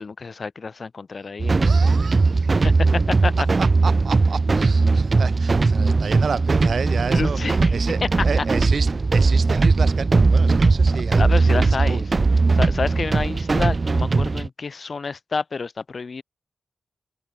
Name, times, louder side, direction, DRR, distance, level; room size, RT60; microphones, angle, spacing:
voice 1, 0.0-1.9 2.5-3.5 7.1-8.1 8.4-8.5 11.2-12.0 12.5-16.2, left 4 dB, 40° left, 2.3 m, -29 dB
sound 1, 1.4-14.5, right 3 dB, 30° right, 0.6 m, -19 dB
voice 2, 1.6-2.7 3.6-12.1, right 5 dB, 55° right, 3.1 m, -31 dB
wide cardioid pair, 135°, 0 cm